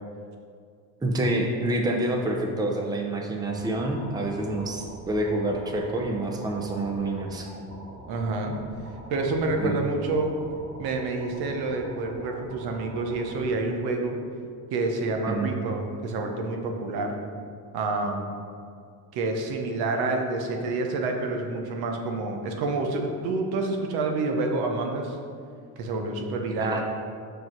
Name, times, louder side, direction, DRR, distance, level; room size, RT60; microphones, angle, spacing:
voice 1, 1.0-7.5 9.6-9.8 15.3-15.5 26.7-26.8, right 1 dB, 10° right, 1 dB, 0.6 m, -27 dB
sound 1, 3.5-13.5, right 1 dB, 40° right, 1.1 m, -44 dB
voice 2, 8.1-8.6 9.1-10.3 10.8-14.2 14.7-17.1 17.7-18.3 19.1-25.2 25.8-26.8, right 3 dB, 75° right, 3 dB, 1.0 m, -28 dB
5.9 x 5.2 x 4.6 m, 2.3 s
cardioid pair, 125°, 39 cm